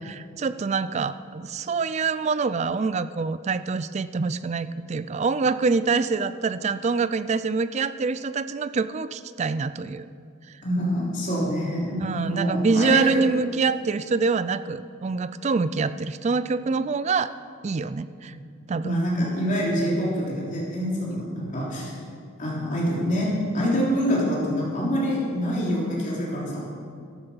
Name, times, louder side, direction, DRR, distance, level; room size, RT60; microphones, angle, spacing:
voice 1, 0.0-10.1 12.0-17.3 17.6-18.3 18.7-18.9, right 4 dB, 30° right, 14 dB, 0.3 m, -25 dB
voice 2, 10.6-13.2 18.3-18.4 18.8-21.9 22.4-26.6, equal, 35° left, -5 dB, 3.3 m, -26 dB
13.5 x 12.5 x 5.6 m, 2.3 s
head